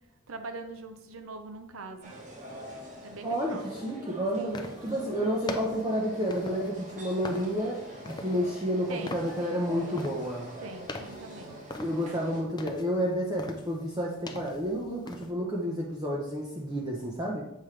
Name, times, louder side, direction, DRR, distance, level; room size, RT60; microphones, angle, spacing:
voice 1, 0.3-2.1 3.0-3.6 4.4-4.5 8.9-9.2 10.6-11.6 12.0-12.1, right 3 dB, 70° right, 7 dB, 0.6 m, -42 dB
sound 1, 2.0-12.4, equal, 35° right, 1.2 m, -44 dB
voice 2, 3.2-10.5 11.8-17.4, equal, 20° right, -2 dB, 0.7 m, -30 dB
sound 2, 4.5-15.3, left 2 dB, 20° left, 0.4 m, -43 dB
7.4 x 5.1 x 3.2 m, 0.90 s
head